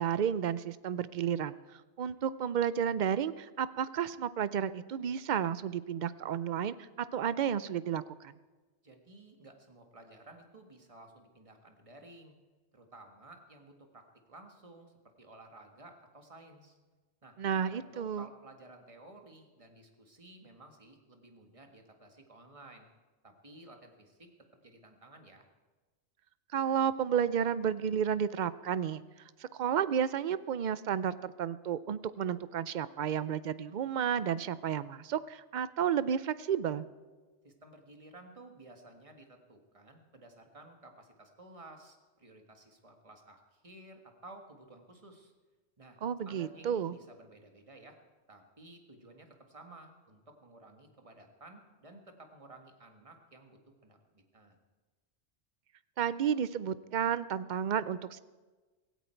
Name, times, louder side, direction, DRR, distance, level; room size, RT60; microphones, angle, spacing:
voice 1, 0.0-8.3 17.4-18.3 26.5-29.0 29.4-36.9 46.0-47.0 56.0-58.2, right 8 dB, 55° right, 15 dB, 0.6 m, -32 dB
voice 2, 8.8-12.4 12.7-16.8 17.2-17.4 17.6-22.9 23.2-25.4 37.4-45.3 45.8-46.0 46.2-48.0 48.3-54.6, right 2 dB, 30° right, 4 dB, 1.7 m, -54 dB
16.5 x 16.5 x 4.5 m, 1.3 s
omnidirectional pair, 1.2 m